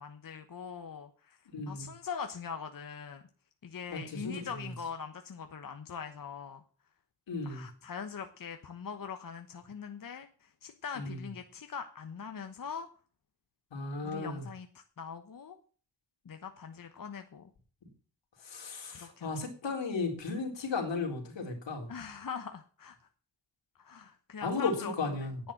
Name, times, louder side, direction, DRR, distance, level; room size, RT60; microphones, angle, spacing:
voice 1, 0.0-1.4 1.7-3.2 3.6-6.6 7.4-12.9 14.0-15.6 16.2-17.5 18.9-19.3 21.9-23.0 23.8-24.9 25.2-25.5, left 6 dB, 50° left, 7 dB, 1.1 m, -42 dB
voice 2, 1.5-1.9 3.9-4.7 7.3-7.6 11.0-11.2 13.7-14.4 18.4-21.9 24.4-25.4, left 4 dB, 80° left, 1 dB, 3.7 m, -35 dB
10.5 x 7.7 x 7.3 m, 0.41 s
cardioid pair, 70°, 43 cm